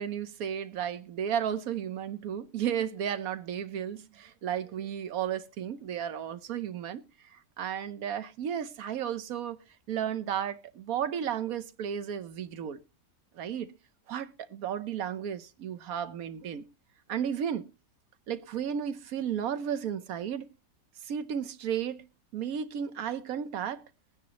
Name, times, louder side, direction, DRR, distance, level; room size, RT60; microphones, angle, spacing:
voice 1, 0.0-9.6 9.9-12.8 13.3-13.7 14.1-16.7 17.1-17.7 18.3-20.5 21.0-22.1 22.3-23.8, right 9 dB, 70° right, 1.2 m, -33 dB
21.5 x 9.5 x 2.9 m
omnidirectional pair, 1.7 m